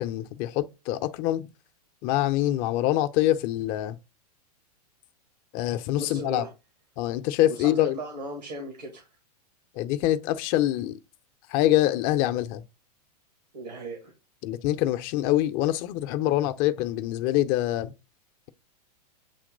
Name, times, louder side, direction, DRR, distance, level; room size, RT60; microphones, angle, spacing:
voice 1, 0.0-1.5 2.0-4.0 5.5-6.4 7.0-8.0 9.8-11.0 11.5-12.6 14.4-17.9, left 14 dB, 45° left, 0.7 m, -25 dB
voice 2, 6.0-6.5 7.5-9.1 13.5-14.1, right 1 dB, 85° right, 2.1 m, -37 dB
8.5 x 2.9 x 3.9 m
hypercardioid pair, 110°, 21 cm